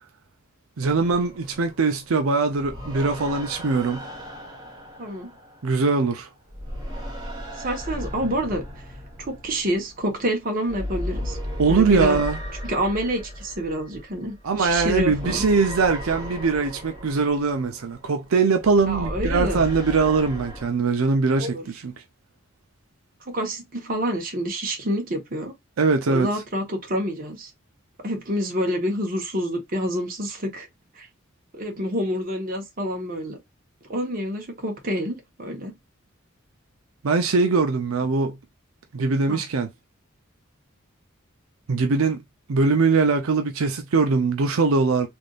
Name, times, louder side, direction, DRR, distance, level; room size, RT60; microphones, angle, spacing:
sound 1, 0.8-6.1 6.5-20.7, equal, 20° right, 1.3 m, -35 dB
voice 1, 0.8-4.0 5.6-6.3 11.6-12.4 14.4-21.9 25.8-26.3 37.0-38.4 38.9-39.7 41.7-42.2 42.5-45.1, right 4 dB, 85° right, 0.5 m, -21 dB
voice 2, 7.6-8.6 9.2-11.4 11.7-12.2 12.7-15.4 18.9-19.7 21.4-21.7 23.2-25.5 26.1-27.5 28.0-30.7 30.9-31.1 31.5-33.4 33.9-35.7 39.3-39.4, equal, 45° right, 1.1 m, -27 dB
3.5 x 2.6 x 2.4 m
head